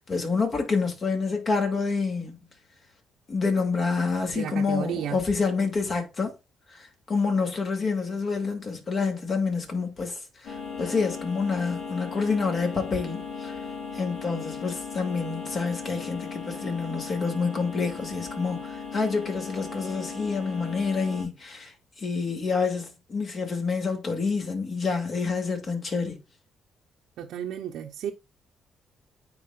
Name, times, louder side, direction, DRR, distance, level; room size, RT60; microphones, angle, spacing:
voice 1, 0.0-2.4 3.3-6.3 6.7-13.6 13.9-26.2, left 4 dB, 45° left, 2.5 m, -28 dB
voice 2, 4.3-5.2 27.2-28.1, right 10 dB, 80° right, 0.7 m, -32 dB
sound 1, 10.4-21.2, left 5 dB, 60° left, 3.2 m, -37 dB
9.5 x 4.2 x 2.4 m
cardioid pair, 90°, 0 cm